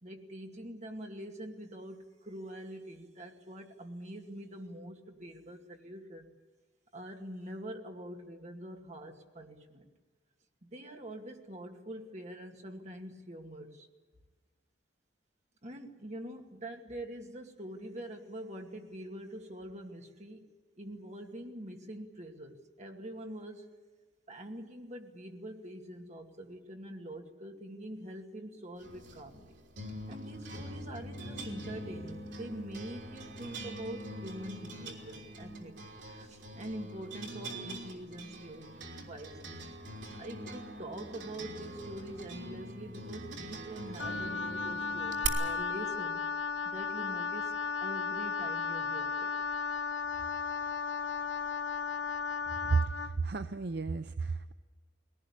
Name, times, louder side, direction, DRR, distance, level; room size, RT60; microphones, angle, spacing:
voice 1, 0.0-6.3 6.9-9.9 10.6-13.9 15.6-20.5 20.8-23.7 24.3-29.6 30.1-35.8 36.0-39.6 40.2-46.2 46.6-49.3 50.2-50.3, right 1 dB, 40° right, 3 dB, 2.3 m, -45 dB
sound 1, 28.8-45.3, right 2 dB, 85° right, 3.5 m, -43 dB
Wind instrument woodwind instrument, 44.0-53.2, left 5 dB, 85° left, 0.9 m, -35 dB
voice 2, 52.7-54.5, right 4 dB, 60° right, 10 dB, 0.6 m, -32 dB
20.5 x 18.5 x 9.8 m, 1.3 s
head